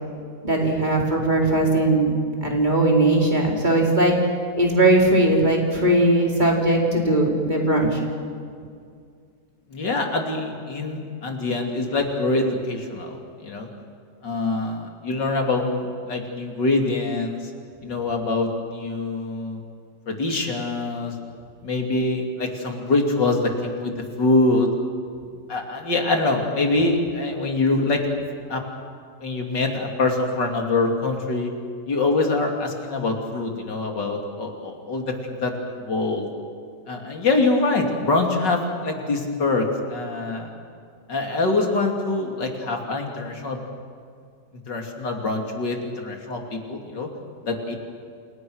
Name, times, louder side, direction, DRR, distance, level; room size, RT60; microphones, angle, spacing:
voice 1, 0.4-4.1 4.5-8.0, right 1 dB, 25° right, -1 dB, 4.6 m, -19 dB
voice 2, 9.7-13.7 14.2-17.4 17.8-19.6 20.1-21.1 21.6-23.9 24.2-24.7 25.5-28.0 28.5-28.6 29.2-31.5 31.9-36.3 36.9-40.5 41.1-43.6 44.7-47.1 47.4-47.8, left 2 dB, 80° left, 2 dB, 3.6 m, -24 dB
29.0 x 28.5 x 6.4 m, 2.2 s
omnidirectional pair, 1.9 m